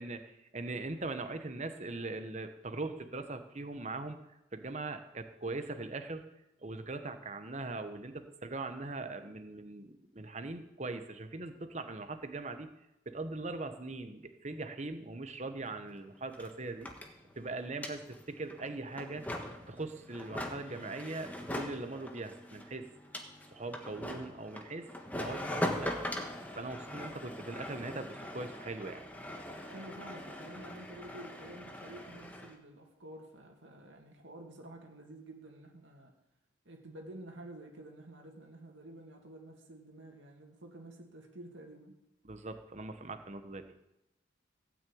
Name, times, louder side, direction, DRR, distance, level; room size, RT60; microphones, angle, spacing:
voice 1, 0.0-4.2 4.5-6.3 6.6-12.7 13.0-16.9 17.3-19.2 19.7-22.9 23.5-26.1 26.5-29.0 42.2-43.6, right 2 dB, 35° right, 8 dB, 1.1 m, -41 dB
sound 1, 15.7-15.8 15.9-32.5, left 1 dB, 10° left, 1.4 m, -41 dB
voice 2, 29.7-36.1 36.6-42.0, right 1 dB, 80° right, 2 dB, 2.5 m, -50 dB
16.5 x 6.2 x 8.7 m, 0.92 s
head